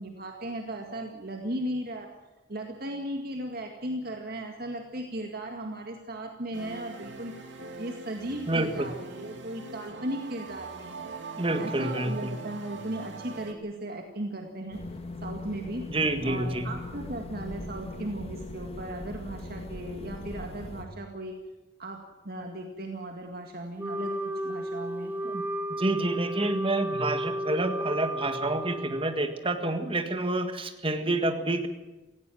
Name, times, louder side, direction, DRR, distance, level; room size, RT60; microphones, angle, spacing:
voice 1, 0.0-2.1 2.5-7.3 7.8-11.1 11.6-14.8 15.2-15.9 16.2-21.4 21.8-24.1 24.4-25.1, right 1 dB, 55° right, 3 dB, 2.0 m, -36 dB
sound 1, 6.5-13.5, right 4 dB, 75° right, 2.7 m, -42 dB
voice 2, 8.5-8.9 11.4-12.3 15.9-16.7 25.2-25.4 25.7-31.7, right 2 dB, 30° right, 7 dB, 1.8 m, -28 dB
sound 2, 14.7-20.8, left 2 dB, 30° left, 2.2 m, -40 dB
Wind instrument woodwind instrument, 23.8-29.4, right 1 dB, 10° right, 0.8 m, -33 dB
18.0 x 16.5 x 9.2 m, 1.1 s
head